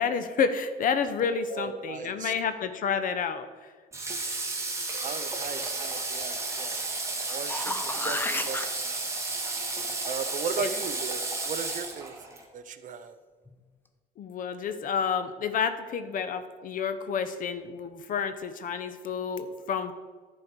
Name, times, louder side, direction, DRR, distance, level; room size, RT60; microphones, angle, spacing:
voice 1, 0.0-3.7 10.6-10.7 14.2-19.9, left 6 dB, 55° left, 10 dB, 0.8 m, -30 dB
voice 2, 1.5-2.3 5.0-6.9 7.2-9.1 10.0-12.2 12.5-13.2, right 6 dB, 50° right, 11 dB, 0.7 m, -37 dB
Water / Water tap faucet, 3.9-12.4, right 3 dB, 15° right, 1.6 m, -32 dB
sound 1, 7.2-8.7 13.5-13.6, left 2 dB, 10° left, 0.7 m, -32 dB
11.0 x 4.4 x 6.5 m, 1.5 s
cardioid pair, 110°, 17 cm